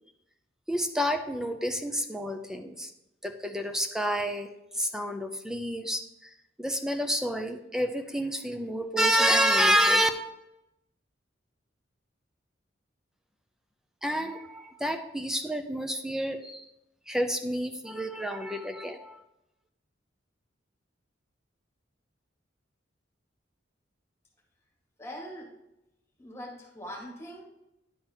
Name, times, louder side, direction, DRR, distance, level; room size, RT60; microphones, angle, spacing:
voice 1, 0.7-2.9 3.2-10.1 14.0-16.7 17.1-19.2, equal, 5° right, 7 dB, 0.6 m, -28 dB
voice 2, 25.0-25.5 26.2-27.4, equal, 15° left, -2 dB, 1.9 m, -41 dB
10.5 x 4.0 x 4.4 m, 0.89 s
head